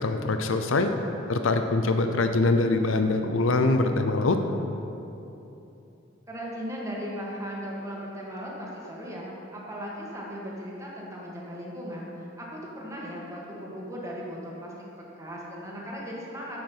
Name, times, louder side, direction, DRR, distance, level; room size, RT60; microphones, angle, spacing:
voice 1, 0.0-0.9 1.3-4.4, left 3 dB, 70° left, 7 dB, 0.6 m, -23 dB
voice 2, 6.3-14.7 15.1-16.6, equal, 15° right, -4 dB, 2.0 m, -37 dB
11.5 x 7.8 x 5.6 m, 2.9 s
head